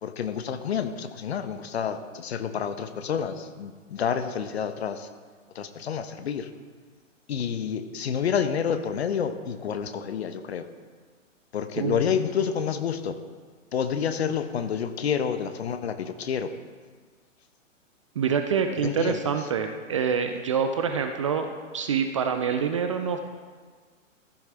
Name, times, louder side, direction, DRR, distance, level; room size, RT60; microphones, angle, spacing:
voice 1, 0.0-5.1 5.5-6.5 7.3-10.7 11.5-13.2 13.7-16.5 18.8-19.2, left 7 dB, 55° left, 10 dB, 0.9 m, -29 dB
voice 2, 11.8-12.1 18.2-21.5 21.7-23.2, right 6 dB, 25° right, 6 dB, 0.4 m, -26 dB
14.5 x 10.0 x 3.4 m, 1.5 s
figure-of-eight pair, 120°, 39 cm